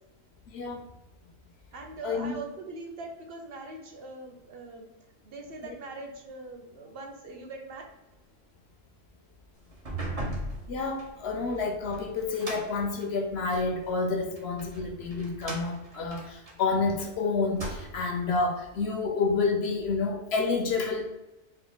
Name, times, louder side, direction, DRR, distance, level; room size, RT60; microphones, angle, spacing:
voice 1, 1.7-4.9 5.2-7.8, right 2 dB, 55° right, 2 dB, 0.9 m, -42 dB
sound 1, 9.7-13.8 14.4-17.1 17.4-18.2, right 1 dB, 35° right, 0.9 m, -39 dB
voice 2, 10.7-21.0, left 4 dB, 65° left, 4 dB, 0.8 m, -29 dB
3.7 x 2.5 x 3.8 m, 0.98 s
omnidirectional pair, 1.3 m